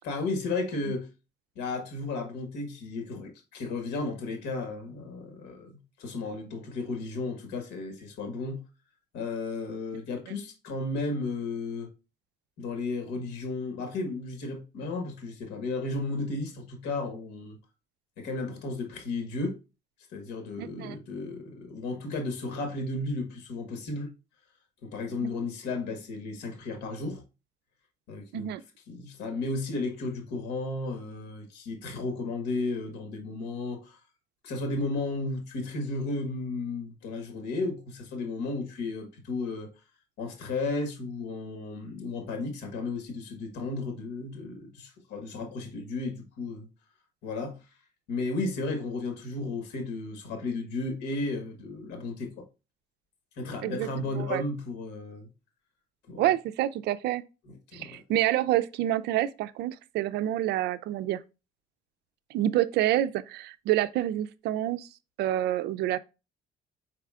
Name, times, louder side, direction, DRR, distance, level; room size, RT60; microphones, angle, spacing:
voice 1, 0.0-1.1 1.5-8.6 9.1-11.9 12.6-17.6 18.2-19.6 20.1-24.1 24.8-27.2 28.1-28.5 28.9-34.0 34.4-39.7 40.2-46.7 47.2-47.6 48.1-52.3 53.4-55.3 56.1-56.2 57.5-58.0, left 3 dB, 85° left, 1.4 m, -34 dB
voice 2, 20.6-21.0 25.2-25.3 28.3-28.6 53.6-53.9 54.2-54.4 56.2-57.2 57.7-61.2 62.3-64.9 65.2-66.0, right 13 dB, 75° right, 0.4 m, -28 dB
4.9 x 4.6 x 2.4 m
cardioid pair, 110°, 17 cm